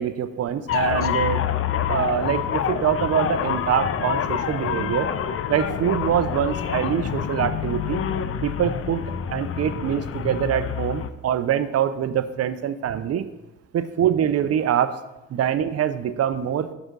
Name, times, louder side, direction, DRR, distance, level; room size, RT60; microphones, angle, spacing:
voice 1, 0.0-1.4 1.9-5.1 5.5-8.0 8.4-9.0 9.3-13.3 13.7-14.9 15.3-16.7, right 9 dB, 55° right, 12 dB, 0.6 m, -24 dB
sound 1, 0.7-11.1, left 8 dB, 50° left, 0.5 m, -27 dB
7.9 x 6.1 x 3.8 m, 1.0 s
cardioid pair, 90°, 30 cm